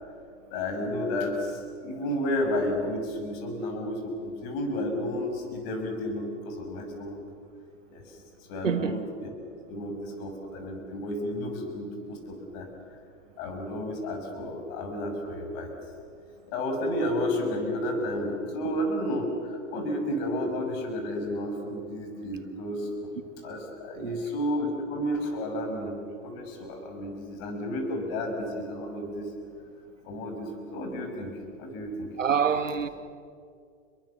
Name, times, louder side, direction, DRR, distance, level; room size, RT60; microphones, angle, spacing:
voice 1, 0.5-7.2 7.9-8.2 8.5-9.3 9.7-12.7 13.4-15.8 16.5-23.1 23.4-25.9 26.2-29.3 30.0-31.3 31.6-32.1, left 1 dB, 50° left, 6.4 m, -32 dB
voice 2, 8.6-9.1 24.0-24.2 32.2-32.9, right 7 dB, 90° right, 1.8 m, -26 dB
29.5 x 23.0 x 7.2 m
hypercardioid pair, 105°, 37 cm